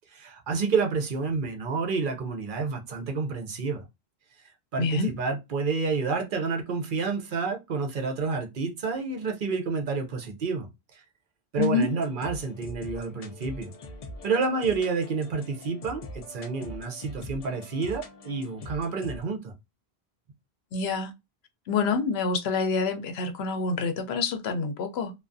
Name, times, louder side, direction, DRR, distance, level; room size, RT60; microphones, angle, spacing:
voice 1, 0.1-3.8 4.7-10.7 10.9-11.0 11.5-13.7 14.2-19.5, right 4 dB, 60° right, 0.7 m, -29 dB
voice 2, 4.8-5.1 11.6-11.9 20.7-21.1 21.7-25.1, left 4 dB, 85° left, 0.8 m, -27 dB
sound 1, 11.6-19.2, left 1 dB, 55° left, 0.4 m, -43 dB
2.3 x 2.2 x 2.5 m
omnidirectional pair, 1.0 m